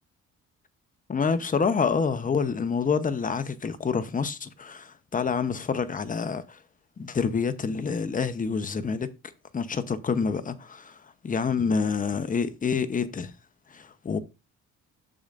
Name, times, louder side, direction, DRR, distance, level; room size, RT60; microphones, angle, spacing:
voice 1, 1.1-6.6 7.0-9.1 9.5-11.0 11.2-13.3 13.7-14.2, left 5 dB, 25° left, 0.8 m, -27 dB
8.7 x 6.4 x 2.5 m
cardioid pair, 90°, 30 cm